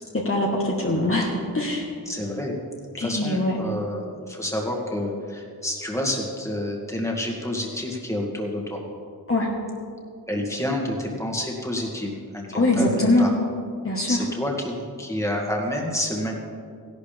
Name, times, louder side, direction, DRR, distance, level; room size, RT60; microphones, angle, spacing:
voice 1, 0.2-1.3 1.5-1.9 3.0-3.6 9.3-9.5 12.5-13.3 13.8-14.2, left 2 dB, 35° left, -3 dB, 1.5 m, -22 dB
voice 2, 2.1-2.6 2.9-8.8 10.3-13.3 14.1-16.3, left 1 dB, 10° left, -1 dB, 2.1 m, -29 dB
16.5 x 11.5 x 3.5 m, 2.3 s
wide cardioid pair, 85°, 36 cm